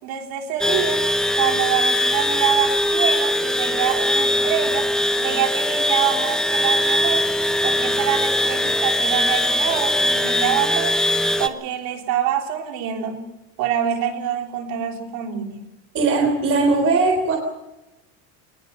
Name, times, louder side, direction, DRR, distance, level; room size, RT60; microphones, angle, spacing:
voice 1, 0.0-1.0 1.3-4.9 5.2-7.3 7.6-11.0 11.4-13.2 13.6-15.6, right 9 dB, 50° right, 3 dB, 3.8 m, -25 dB
sound 1, 0.6-11.5, left 1 dB, ahead, 0.9 m, -21 dB
voice 2, 15.9-17.4, right 3 dB, 30° right, 2 dB, 3.8 m, -19 dB
20.5 x 18.5 x 7.0 m, 0.98 s
supercardioid pair, 140°, 43 cm